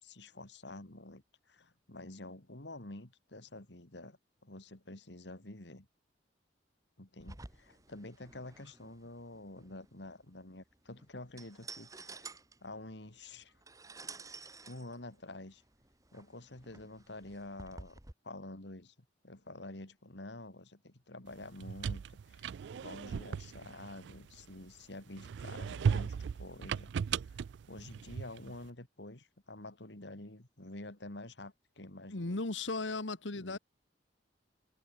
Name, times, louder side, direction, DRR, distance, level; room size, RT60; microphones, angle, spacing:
voice 1, 0.0-5.9 7.0-12.3 12.6-13.5 14.7-15.6 16.1-18.0 18.2-18.9 19.2-22.5 22.7-32.4 33.3-33.6, left 2 dB, 65° left, 2.5 m, -48 dB
sound 1, 7.2-18.1, right 3 dB, 20° right, 1.7 m, -52 dB
sound 2, 21.4-24.7 25.2-28.6, right 6 dB, 70° right, 0.3 m, -37 dB
voice 2, 32.1-33.6, left 3 dB, 85° left, 1.6 m, -36 dB
head